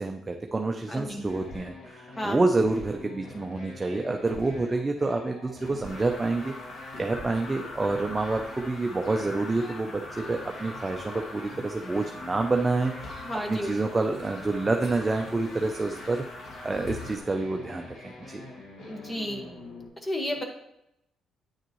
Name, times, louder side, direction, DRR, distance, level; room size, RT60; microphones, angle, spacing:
voice 1, 0.0-6.5 7.0-13.2 13.5-16.2 16.6-18.4, right 3 dB, 20° right, 3 dB, 0.6 m, -28 dB
sound 1, 0.7-19.9, left 2 dB, 80° left, 2.7 m, -46 dB
voice 2, 0.9-1.3 2.2-2.4 13.2-13.7 18.9-19.5 20.0-20.4, equal, 20° left, 2 dB, 1.6 m, -32 dB
sound 2, 1.2-1.8 2.5-3.0 4.3-4.5 5.6-6.0 6.9-7.3, left 1 dB, 40° left, 3.1 m, -43 dB
sound 3, 5.8-17.2, left 2 dB, 60° left, 1.6 m, -42 dB
9.3 x 6.5 x 3.1 m, 0.83 s
cardioid pair, 90°, 0 cm